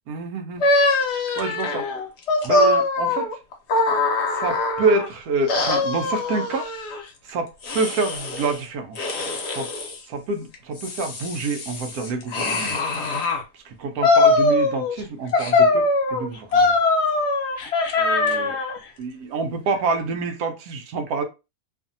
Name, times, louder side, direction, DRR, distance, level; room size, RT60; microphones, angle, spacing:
voice 1, 0.1-0.6 1.4-1.9 2.4-3.4 4.3-6.7 7.2-9.0 9.5-9.7 10.1-12.8 13.6-15.9 16.1-16.7 18.0-18.6 19.0-21.2, right 3 dB, 80° right, 1.1 m, -27 dB
sound 1, 0.6-5.1 5.5-7.0 7.6-8.6 9.0-10.0 10.5-13.4 14.0-15.0 15.3-18.8, left 3 dB, 55° left, 0.9 m, -22 dB
2.7 x 2.5 x 2.6 m
omnidirectional pair, 1.6 m